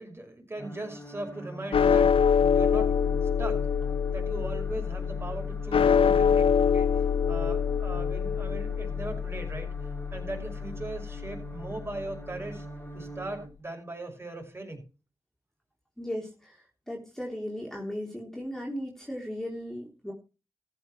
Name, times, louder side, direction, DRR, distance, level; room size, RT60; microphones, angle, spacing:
voice 1, 0.0-2.1 2.5-2.9 3.4-3.7 4.1-6.9 7.3-9.7 10.1-12.7 12.9-14.8, right 2 dB, 25° right, 3 dB, 5.8 m, -39 dB
sound 1, 0.6-13.5, right 1 dB, 20° left, 3.7 m, -44 dB
sound 2, 1.7-12.1, left 7 dB, 75° left, 0.5 m, -25 dB
voice 2, 16.0-16.6 16.9-20.1, equal, 5° left, -1 dB, 3.6 m, -36 dB
14.5 x 6.0 x 6.3 m, 0.32 s
wide cardioid pair, 75°, 9 cm